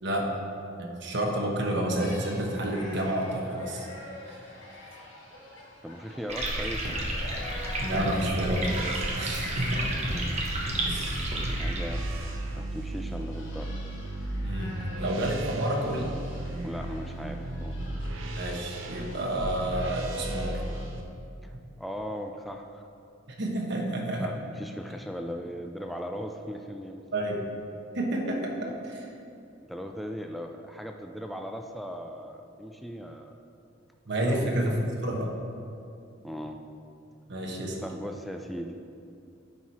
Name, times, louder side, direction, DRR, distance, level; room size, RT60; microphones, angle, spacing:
voice 1, 0.8-3.9 4.3-4.4 7.8-10.1 10.8-11.3 14.4-16.1 18.4-20.6 23.3-24.3 27.1-27.4 27.9-29.1 34.1-35.3 37.3-37.8, right 1 dB, 65° right, 0 dB, 1.1 m, -30 dB
sound 1, 2.0-20.9, left 1 dB, 75° left, 1.2 m, -48 dB
voice 2, 5.8-7.0 11.6-13.7 16.6-17.8 21.4-21.5 21.8-22.8 24.2-27.1 29.7-33.3 34.2-34.8 36.2-36.6 37.8-38.8, equal, ahead, 3 dB, 0.3 m, -38 dB
sound 2, 6.3-12.2, right 1 dB, 35° right, 1.2 m, -31 dB
sound 3, 8.2-21.0, right 1 dB, 85° right, 0.8 m, -35 dB
9.7 x 4.7 x 4.2 m, 2.6 s
head